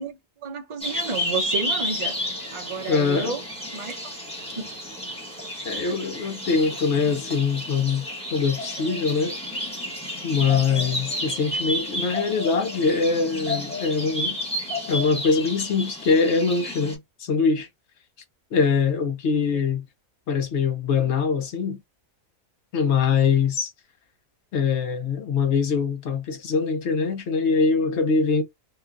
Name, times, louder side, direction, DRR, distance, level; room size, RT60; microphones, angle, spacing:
voice 1, 0.0-2.2 2.5-3.4 3.7-4.1 4.6-4.7 5.7-6.0 19.5-19.6, right 4 dB, 40° right, 0.4 m, -31 dB
sound 1, 0.8-17.0, left 1 dB, 5° left, 0.8 m, -31 dB
voice 2, 2.9-3.4 5.6-8.0 8.3-9.4 10.2-14.4 14.9-17.7 18.5-19.8 20.3-21.8 22.7-23.7 24.5-28.4, left 5 dB, 60° left, 0.9 m, -23 dB
3.2 x 2.3 x 2.4 m
omnidirectional pair, 1.4 m